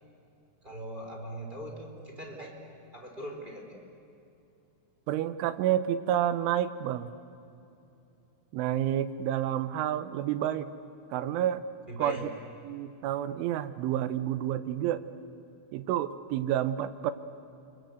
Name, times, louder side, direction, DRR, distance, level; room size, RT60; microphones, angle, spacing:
voice 1, 0.6-2.6 2.9-3.8 11.9-12.3, right 1 dB, 10° right, 0 dB, 3.3 m, -40 dB
voice 2, 5.1-7.1 8.5-10.7 11.1-11.6 12.0-12.2 12.6-15.0 15.7-17.1, right 11 dB, 85° right, 12 dB, 3.4 m, -29 dB
29.5 x 24.5 x 8.2 m, 2.8 s
omnidirectional pair, 5.4 m